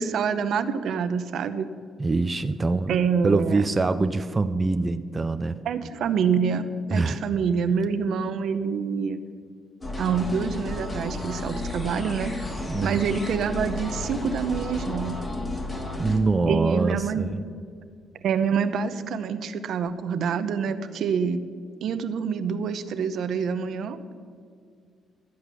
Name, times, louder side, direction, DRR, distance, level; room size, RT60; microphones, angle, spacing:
voice 1, 0.0-1.7 2.9-3.6 5.6-9.2 10.0-12.3 12.8-15.2 16.5-17.3 18.2-21.4 21.8-24.0, right 6 dB, 70° right, 10 dB, 0.8 m, -26 dB
voice 2, 2.0-2.9 3.2-5.6 6.9-7.2 12.7-13.0 16.0-17.4, right 3 dB, 25° right, 10 dB, 0.5 m, -24 dB
sound 1, 9.8-16.2, left 2 dB, 25° left, 2.0 m, -32 dB
13.0 x 7.9 x 6.9 m, 2.1 s
cardioid pair, 90°, 0 cm